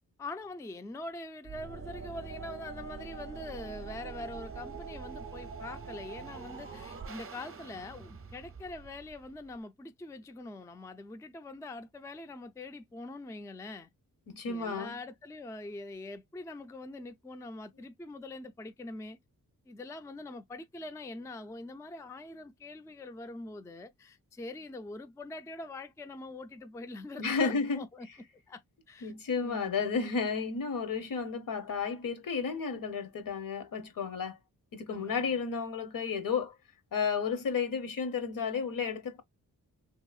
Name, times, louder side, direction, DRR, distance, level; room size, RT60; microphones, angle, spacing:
voice 1, 0.2-13.9 14.5-19.2 19.7-28.1 28.5-28.6 28.9-29.1 29.4-29.9 34.9-35.4, left 2 dB, 10° left, 0.4 m, -44 dB
sound 1, 1.4-9.6, right 5 dB, 40° right, 0.6 m, -44 dB
voice 2, 14.3-14.9 27.2-27.8 29.0-34.4 34.7-36.5 36.9-39.2, left 5 dB, 65° left, 0.8 m, -32 dB
2.9 x 2.7 x 2.3 m
cardioid pair, 70°, 36 cm